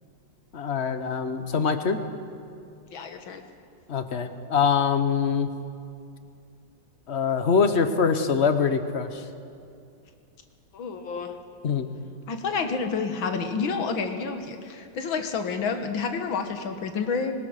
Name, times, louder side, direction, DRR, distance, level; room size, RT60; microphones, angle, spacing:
voice 1, 0.5-2.0 3.9-5.5 7.1-9.2 11.6-11.9, left 6 dB, 45° left, 9 dB, 1.0 m, -24 dB
voice 2, 2.9-3.4 10.7-11.4 12.3-17.3, left 5 dB, 85° left, 6 dB, 2.2 m, -29 dB
21.0 x 19.5 x 6.5 m, 2.4 s
omnidirectional pair, 2.1 m